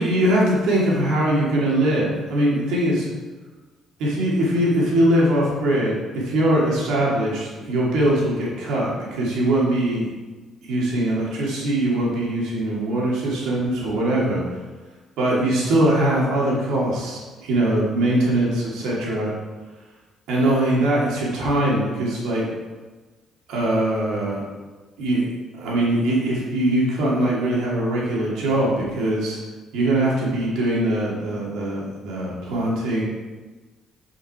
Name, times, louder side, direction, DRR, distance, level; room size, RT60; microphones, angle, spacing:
voice 1, 0.0-3.1 4.0-10.1 10.6-14.4 15.2-19.3 20.3-22.4 23.5-24.4 25.0-25.3 25.5-29.4 29.7-33.0, right 1 dB, 80° right, -5 dB, 2.5 m, -21 dB
6.2 x 5.5 x 4.8 m, 1.3 s
cardioid pair, 85°, 0 cm